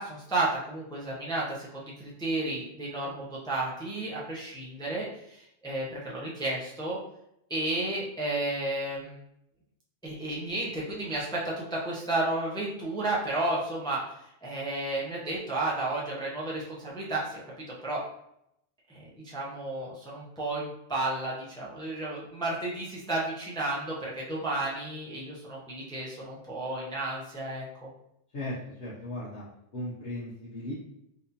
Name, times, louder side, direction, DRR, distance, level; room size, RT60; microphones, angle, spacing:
voice 1, 0.0-7.0 7.5-9.2 10.0-14.1 14.4-17.4 17.8-18.0 18.9-27.9, right 2 dB, 5° left, -5 dB, 0.5 m, -32 dB
voice 2, 28.3-29.5 29.7-30.7, left 1 dB, 65° left, -9 dB, 1.1 m, -37 dB
4.0 x 2.6 x 2.7 m, 0.79 s
omnidirectional pair, 1.3 m